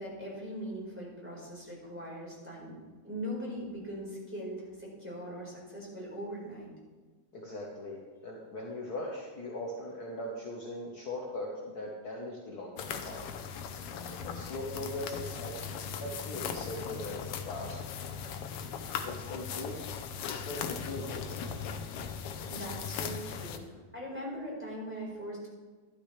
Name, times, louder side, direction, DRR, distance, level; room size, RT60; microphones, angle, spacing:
voice 1, 0.0-2.8 3.0-6.7 22.5-25.5, equal, 5° right, -6 dB, 4.2 m, -40 dB
voice 2, 7.3-11.5 11.7-13.2 14.2-15.6 16.0-17.8 19.0-19.8 20.2-21.5, left 1 dB, 55° left, -3 dB, 1.0 m, -40 dB
sound 1, 12.8-23.6, left 7 dB, 75° left, 1.4 m, -38 dB
13.5 x 12.0 x 3.3 m, 1.4 s
omnidirectional pair, 3.6 m